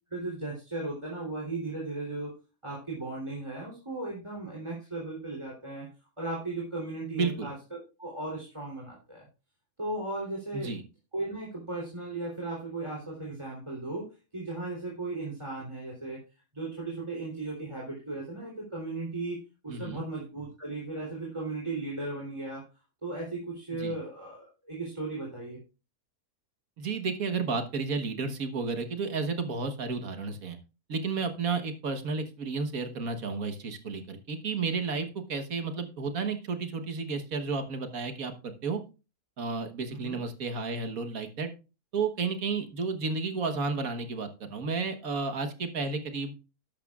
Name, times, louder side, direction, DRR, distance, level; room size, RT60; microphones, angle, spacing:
voice 1, 0.1-2.3 2.6-5.9 6.2-9.3 9.8-10.7 11.1-14.0 14.3-16.2 16.5-22.6 23.0-25.6 39.9-40.2, right 2 dB, 20° right, -2 dB, 3.4 m, -36 dB
voice 2, 7.1-7.5 10.5-10.8 19.7-20.0 23.8-24.0 26.8-30.6 30.9-38.8 39.4-41.5 41.9-46.3, right 4 dB, 65° right, 7 dB, 1.7 m, -32 dB
12.5 x 11.5 x 2.4 m, 0.30 s
omnidirectional pair, 1.6 m